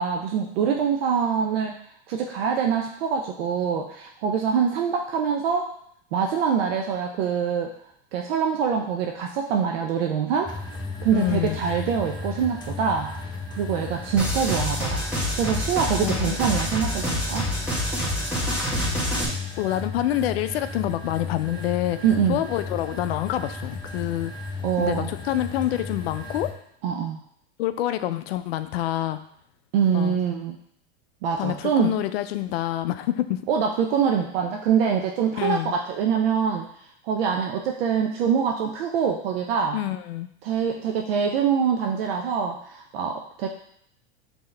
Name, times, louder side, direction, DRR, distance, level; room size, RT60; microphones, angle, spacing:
voice 1, 0.0-1.8 2.1-5.7 6.1-7.7 8.1-10.5 11.0-13.1 13.5-15.0 15.4-17.5 22.0-22.4 24.6-25.2 26.8-27.2 29.7-30.6 31.2-31.9 33.5-36.7 37.0-39.8 40.4-43.5, right 7 dB, 65° right, 2 dB, 0.6 m, -24 dB
sound 1, 10.5-26.5, left 3 dB, 15° left, 0.5 m, -35 dB
voice 2, 11.1-11.6 16.0-16.4 19.6-22.0 22.3-24.3 24.8-26.5 27.6-29.2 29.9-30.2 31.4-33.4 35.4-35.7 39.7-40.3, left 13 dB, 70° left, 11 dB, 0.5 m, -27 dB
sound 2, 14.2-19.3, equal, 5° right, 1.2 m, -27 dB
5.5 x 2.9 x 3.3 m, 0.69 s
hypercardioid pair, 120°, 31 cm